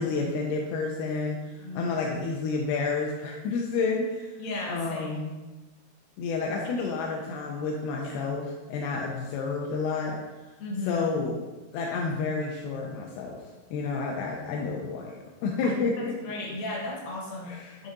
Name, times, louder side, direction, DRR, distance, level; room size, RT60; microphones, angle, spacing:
voice 1, 0.0-4.4 4.7-5.4 6.2-10.2 10.9-11.4 11.7-13.4 13.7-16.1 17.5-17.8, left 4 dB, 80° left, -1 dB, 2.3 m, -30 dB
voice 2, 4.4-5.1 6.6-6.7 8.0-8.2 10.6-11.2 15.6-17.9, left 2 dB, 65° left, -3 dB, 2.9 m, -36 dB
11.0 x 3.8 x 2.7 m, 1.2 s
omnidirectional pair, 4.8 m